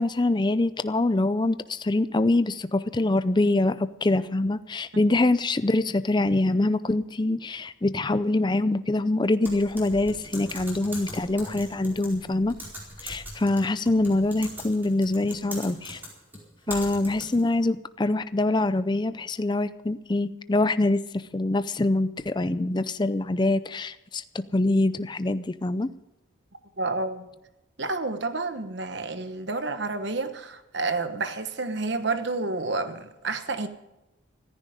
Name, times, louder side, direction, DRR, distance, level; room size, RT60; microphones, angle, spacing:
voice 1, 0.0-12.6 13.0-16.0 16.7-21.0 21.3-25.9, left 2 dB, 20° left, 13 dB, 0.5 m, -24 dB
Typing, 9.4-17.6, equal, 10° right, 4.5 m, -41 dB
voice 2, 26.8-27.3 27.8-33.7, right 3 dB, 55° right, 9 dB, 1.1 m, -29 dB
15.5 x 14.5 x 5.1 m, 0.94 s
head